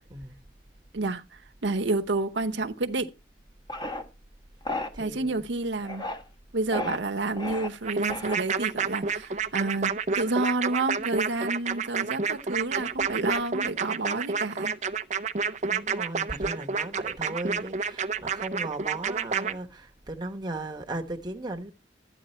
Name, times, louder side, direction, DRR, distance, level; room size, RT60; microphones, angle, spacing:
voice 1, 0.9-3.1 5.0-6.1 6.5-14.7, right 2 dB, 80° right, 0.9 m, -29 dB
sound 1, 3.7-4.0 4.7-4.9 5.8-6.2 6.7-7.0 7.4-7.7 8.1-8.6, left 2 dB, 25° left, 1.2 m, -33 dB
voice 2, 4.9-5.4 15.7-21.7, right 2 dB, 25° right, 1.1 m, -37 dB
sound 2, 7.8-19.5, right 5 dB, 40° right, 0.6 m, -29 dB
12.5 x 9.2 x 4.3 m
head